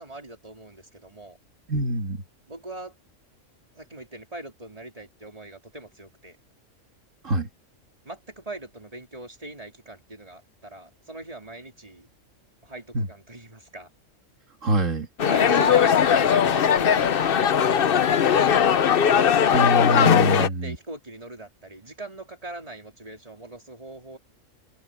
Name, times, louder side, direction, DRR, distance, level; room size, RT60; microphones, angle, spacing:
voice 1, 0.0-1.4 2.5-3.0 3.7-6.4 8.1-12.1 12.6-13.9 15.2-18.7 20.3-24.2, right 2 dB, 30° right, 3.8 m, -41 dB
voice 2, 1.7-2.2 7.2-7.5 12.9-13.1 14.6-15.1 19.5-20.8, right 1 dB, 75° right, 2.3 m, -24 dB
sound 1, 15.2-20.5, left 8 dB, 50° left, 0.9 m, -19 dB
open air
omnidirectional pair, 1.3 m